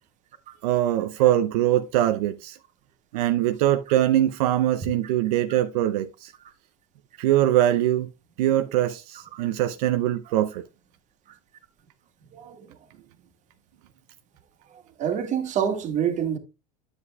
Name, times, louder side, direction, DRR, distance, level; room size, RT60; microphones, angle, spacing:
voice 1, 0.6-2.6 3.1-6.3 7.2-8.1 8.4-10.6, right 13 dB, 80° right, 0.6 m, -22 dB
voice 2, 15.0-16.4, right 8 dB, 40° right, 1.7 m, -26 dB
9.7 x 7.9 x 2.3 m
supercardioid pair, 115°, 19 cm